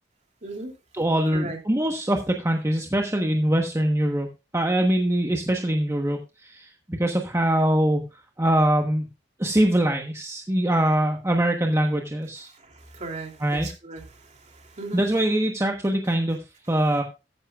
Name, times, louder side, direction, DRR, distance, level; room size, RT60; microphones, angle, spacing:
voice 1, 0.9-4.3 4.5-8.0 8.4-9.1 9.4-12.5 13.4-13.7 14.9-16.4 16.7-17.0, right 1 dB, 15° right, 2 dB, 1.2 m, -23 dB
voice 2, 12.6-15.0, right 2 dB, 40° right, 3 dB, 2.9 m, -37 dB
14.0 x 10.0 x 2.4 m, 0.27 s
head